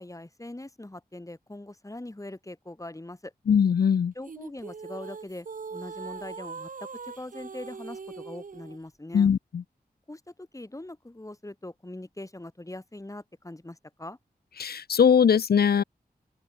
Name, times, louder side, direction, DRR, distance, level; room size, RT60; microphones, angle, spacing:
voice 1, 0.0-3.3 4.2-9.3 10.1-14.2, left 1 dB, 20° left, 5.3 m, -42 dB
voice 2, 3.5-4.1 9.1-9.6 14.6-15.8, left 7 dB, 75° left, 0.6 m, -21 dB
sound 1, 4.3-8.8, right 5 dB, 55° right, 1.0 m, -41 dB
open air
wide cardioid pair, 85°, 16 cm